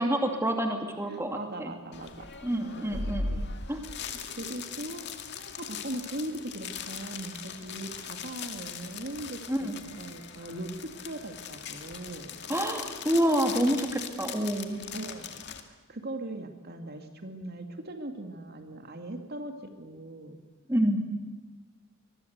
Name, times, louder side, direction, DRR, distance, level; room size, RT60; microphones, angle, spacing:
voice 1, 0.0-1.7 2.4-3.3 3.7-3.8 9.5-9.8 12.5-14.8 20.7-21.0, right 1 dB, 10° right, 4 dB, 2.5 m, -27 dB
voice 2, 1.1-2.3 2.6-3.0 3.3-3.8 4.2-5.0 5.4-9.7 10.0-12.3 14.9-15.3 15.7-19.5 19.8-20.4, right 1 dB, 45° right, 5 dB, 2.4 m, -40 dB
sound 1, 1.9-15.6, left 5 dB, 55° left, 2.2 m, -39 dB
24.5 x 22.0 x 8.2 m, 1.3 s
head